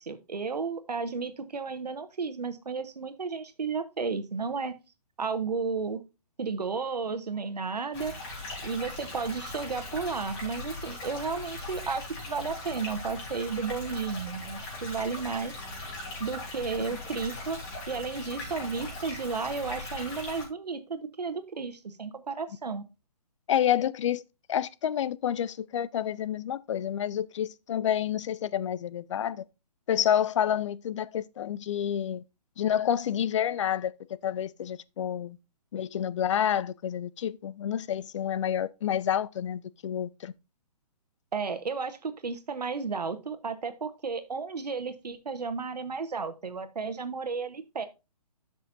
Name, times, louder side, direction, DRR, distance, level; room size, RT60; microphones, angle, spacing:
voice 1, 0.0-4.7 5.2-6.0 6.4-8.1 8.6-15.5 16.2-17.6 17.9-22.8 41.3-47.9, right 5 dB, 85° right, 1.2 m, -33 dB
sound 1, 7.9-20.4, left 2 dB, 30° left, 4.2 m, -39 dB
voice 2, 23.5-24.2 24.5-29.4 29.9-32.2 32.6-33.9 34.2-35.4 35.7-40.3, left 10 dB, 50° left, 0.5 m, -29 dB
11.5 x 6.2 x 2.6 m
hypercardioid pair, 140°, 20 cm